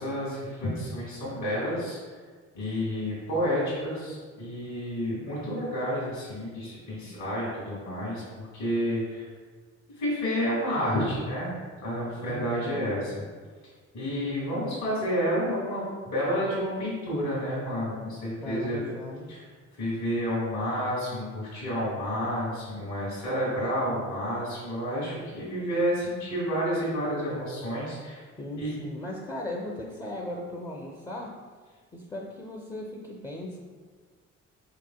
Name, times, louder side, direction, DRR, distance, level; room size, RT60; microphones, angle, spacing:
voice 1, 0.0-2.0 2.5-9.3 10.0-11.5 11.8-13.2 13.9-18.8 19.3-19.4 19.8-28.2 28.6-28.7, equal, 70° left, -7 dB, 1.5 m, -30 dB
voice 2, 12.2-12.8 18.4-19.4 28.4-31.3 31.9-33.6, left 1 dB, 15° left, 0 dB, 0.4 m, -38 dB
4.7 x 3.6 x 2.2 m, 1.5 s
cardioid pair, 90°, 30 cm